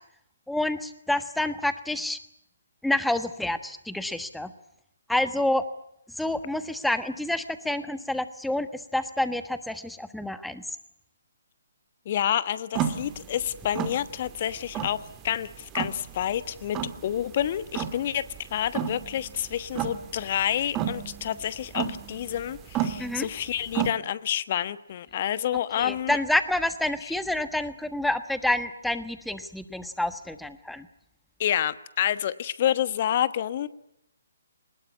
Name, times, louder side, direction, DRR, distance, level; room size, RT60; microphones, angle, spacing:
voice 1, 0.5-2.2 2.8-4.5 5.1-5.6 6.2-10.6 23.0-23.3 25.8-30.9, left 1 dB, ahead, 11 dB, 1.4 m, -28 dB
voice 2, 12.0-15.0 15.2-18.2 18.5-26.2 27.0-27.1 31.4-33.7, left 10 dB, 40° left, 15 dB, 1.2 m, -28 dB
sound 1, 12.7-23.9, right 9 dB, 20° right, 2.1 m, -33 dB
22.0 x 20.0 x 9.7 m, 0.77 s
figure-of-eight pair, 140°, 0 cm